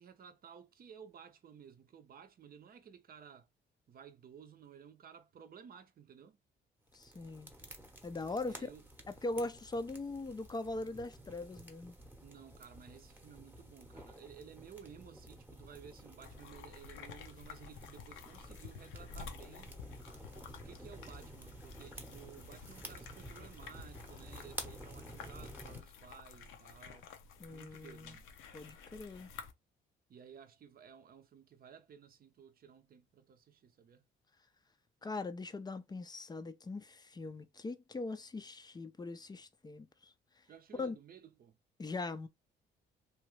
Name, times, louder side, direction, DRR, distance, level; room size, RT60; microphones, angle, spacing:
voice 1, 0.0-3.5 3.9-6.4 8.4-8.8 12.2-19.8 20.5-27.1 27.5-28.3 30.1-34.1 40.4-41.6, right 7 dB, 50° right, 0.6 m, -55 dB
voice 2, 6.9-7.5 8.0-8.7 9.1-12.0 27.4-28.2 28.5-29.3 35.0-40.4 40.8-41.0 41.8-42.3, left 2 dB, 20° left, 0.4 m, -41 dB
sound 1, 6.9-25.8, right 1 dB, 10° right, 0.9 m, -51 dB
sound 2, 16.2-29.5, left 6 dB, 90° left, 0.6 m, -52 dB
2.9 x 2.3 x 3.0 m
cardioid pair, 90°, 20 cm